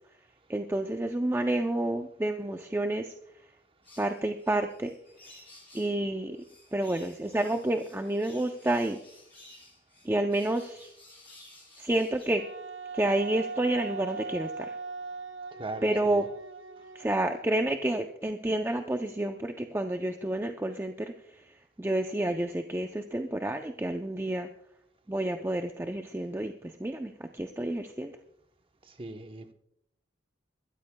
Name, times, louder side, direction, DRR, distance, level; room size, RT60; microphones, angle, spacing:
voice 1, 0.5-3.1 4.0-4.9 5.7-6.4 6.7-9.0 10.0-10.9 11.8-12.4 12.9-14.8 15.8-16.2 16.9-24.5 25.1-28.2, right 1 dB, 10° right, 5 dB, 0.4 m, -29 dB
sound 1, 3.8-6.0 6.3-12.3, left 2 dB, 10° left, 6.5 m, -54 dB
Wind instrument woodwind instrument, 12.4-17.8, right 4 dB, 90° right, 0.7 m, -40 dB
voice 2, 15.5-16.2 28.8-29.5, right 2 dB, 25° right, 7 dB, 0.8 m, -40 dB
23.0 x 13.0 x 2.2 m, 0.76 s
head